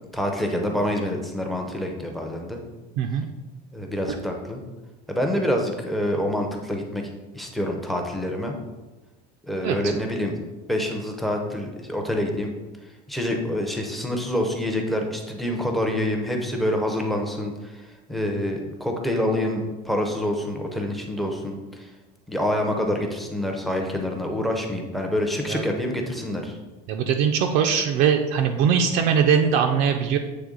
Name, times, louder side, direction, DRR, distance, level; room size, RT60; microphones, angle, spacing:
voice 1, 0.1-2.6 3.7-4.6 5.1-7.1 7.3-8.5 9.5-10.4 10.7-12.5 13.1-21.9 22.3-26.6, left 1 dB, ahead, 2 dB, 0.5 m, -26 dB
voice 2, 26.9-30.2, right 7 dB, 60° right, 5 dB, 0.4 m, -21 dB
7.7 x 3.3 x 3.7 m, 1.2 s
cardioid pair, 165°, 19 cm